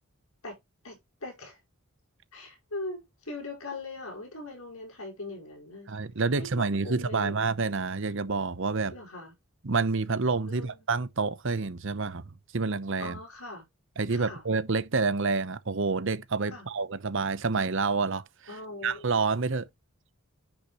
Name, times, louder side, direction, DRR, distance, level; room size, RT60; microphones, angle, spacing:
voice 1, 0.8-1.6 2.3-5.9 6.3-7.5 8.9-9.3 10.5-10.8 13.0-13.6 14.1-14.4 16.5-16.7 18.5-19.0, left 2 dB, 70° left, 5.3 m, -41 dB
voice 2, 5.9-8.9 9.6-12.2 12.5-13.2 14.0-18.6 18.8-19.7, right 4 dB, 55° right, 0.8 m, -28 dB
10.0 x 5.9 x 3.1 m
head